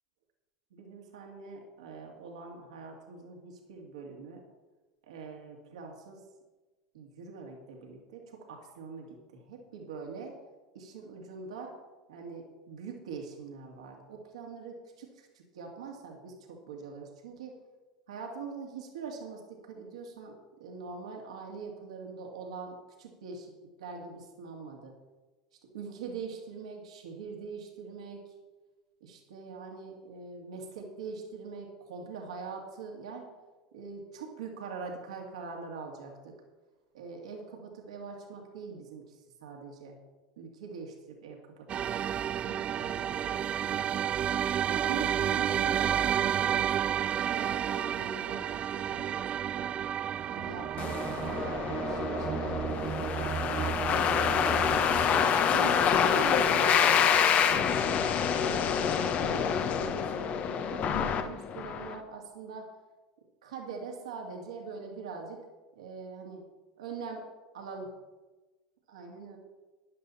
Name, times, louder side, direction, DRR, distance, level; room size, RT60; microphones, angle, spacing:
voice 1, 0.7-4.4 5.0-6.2 6.9-10.4 10.7-11.8 12.1-17.5 18.1-20.3 20.6-23.5 23.8-24.9 25.7-28.3 29.0-33.3 33.7-36.3 36.9-39.9 40.4-44.4 44.6-46.7 47.3-49.2 49.5-49.7 50.2-54.6 55.4-62.7 63.4-65.4 65.7-66.4 66.8-67.2 67.5-67.9 68.9-69.4, right 5 dB, 80° right, 1 dB, 2.5 m, -43 dB
sound 1, 41.7-55.2, right 9 dB, 35° right, 0.3 m, -31 dB
sound 2, 50.8-61.9, left 7 dB, 45° left, 1.2 m, -27 dB
13.5 x 10.5 x 4.2 m, 1.2 s
hypercardioid pair, 80°, 3 cm